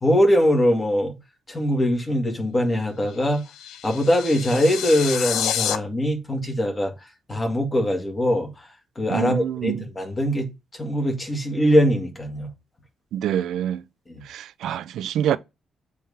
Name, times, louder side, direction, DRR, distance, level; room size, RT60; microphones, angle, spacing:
voice 1, 0.0-1.2 1.5-3.4 3.8-6.9 7.3-8.5 9.0-10.5 10.8-12.5 14.1-14.2, equal, 20° left, 2.0 m, -22 dB
sound 1, 3.1-5.8, left 10 dB, 80° left, 0.6 m, -29 dB
voice 2, 9.1-9.8 13.1-13.8 14.3-15.4, right 10 dB, 75° right, 0.5 m, -26 dB
7.6 x 3.6 x 5.6 m
cardioid pair, 165°, 0 cm